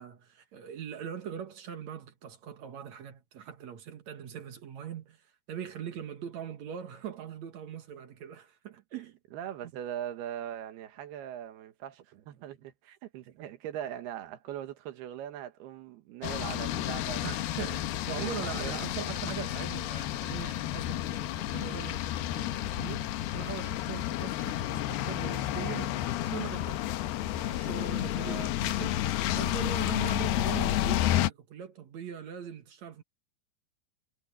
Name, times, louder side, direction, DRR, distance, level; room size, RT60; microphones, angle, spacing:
voice 1, 0.0-9.2 17.2-26.8 27.4-29.0 29.3-33.0, right 9 dB, 60° right, 2.1 m, -41 dB
voice 2, 9.3-17.4 18.1-18.8 28.1-28.5, right 10 dB, 80° right, 3.3 m, -40 dB
sound 1, 16.2-31.3, left 13 dB, 80° left, 2.8 m, -31 dB
omnidirectional pair, 4.6 m